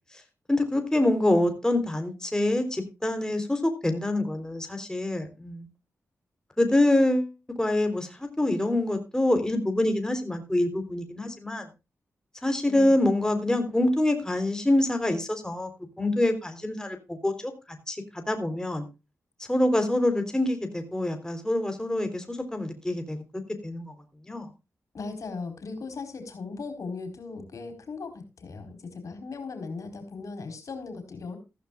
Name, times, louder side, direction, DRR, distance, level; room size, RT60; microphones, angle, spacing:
voice 1, 0.5-5.7 6.6-11.7 12.4-15.7 16.0-17.5 17.9-18.9 19.5-23.2 23.6-23.9 24.3-24.5, left 1 dB, 10° left, 6 dB, 3.8 m, -26 dB
voice 2, 24.9-31.4, left 4 dB, 70° left, 8 dB, 4.7 m, -38 dB
15.0 x 15.0 x 2.4 m, 0.28 s
cardioid pair, 65°, 6 cm